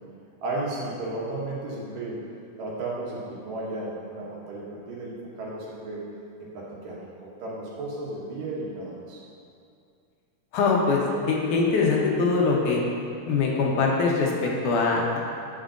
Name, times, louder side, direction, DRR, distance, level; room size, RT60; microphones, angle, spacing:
voice 1, 0.4-2.2 2.6-6.0 6.4-9.2, right 2 dB, 80° right, -5 dB, 2.9 m, -34 dB
voice 2, 10.5-12.8 13.3-15.2, left 4 dB, 75° left, -2 dB, 2.2 m, -23 dB
9.0 x 7.6 x 2.5 m, 2.5 s
omnidirectional pair, 3.8 m